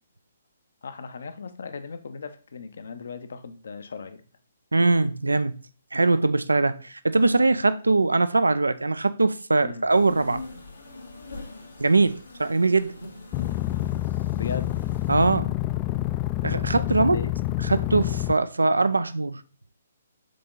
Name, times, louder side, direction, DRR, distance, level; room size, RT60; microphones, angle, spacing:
voice 1, 0.8-4.2 9.6-9.9 14.3-14.7 16.7-17.3, left 5 dB, 65° left, 0.8 m, -37 dB
voice 2, 4.7-5.5 5.9-10.4 11.8-13.0 15.1-15.5 16.4-17.2 17.7-19.4, right 3 dB, 85° right, 0.4 m, -22 dB
sound 1, 9.9-15.3, left 3 dB, 85° left, 1.7 m, -42 dB
sound 2, 13.3-18.3, left 16 dB, 25° left, 0.3 m, -27 dB
6.7 x 3.8 x 3.9 m
figure-of-eight pair, 135°, 0 cm